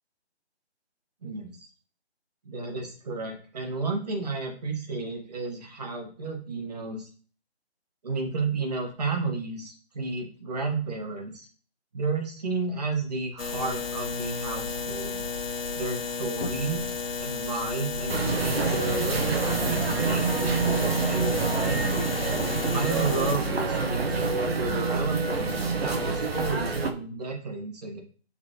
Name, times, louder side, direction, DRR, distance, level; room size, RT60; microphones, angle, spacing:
voice 1, 1.2-1.7 2.4-7.1 8.0-11.5 11.9-15.2 15.8-16.9 17.2-21.9 22.7-28.0, right 3 dB, 35° right, 2 dB, 1.7 m, -32 dB
sound 1, 13.4-23.4, left 5 dB, 60° left, 0.9 m, -33 dB
sound 2, 18.1-26.9, right 4 dB, 65° right, 1.1 m, -27 dB
7.2 x 4.2 x 3.1 m, 0.41 s
figure-of-eight pair, 165°, 33 cm